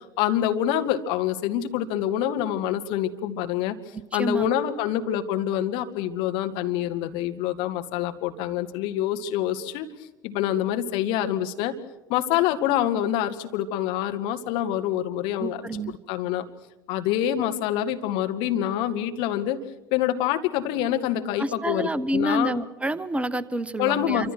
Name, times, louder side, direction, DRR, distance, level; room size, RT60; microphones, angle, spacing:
voice 1, 0.0-3.8 4.1-9.9 10.2-11.7 12.1-15.6 15.9-16.4 16.9-19.6 19.9-22.5 23.8-24.3, left 11 dB, 55° left, 7 dB, 1.9 m, -26 dB
voice 2, 4.1-4.5 15.4-16.0 21.4-24.3, right 1 dB, 15° right, 16 dB, 1.1 m, -28 dB
27.5 x 25.0 x 6.2 m, 0.98 s
figure-of-eight pair, 65°, 10 cm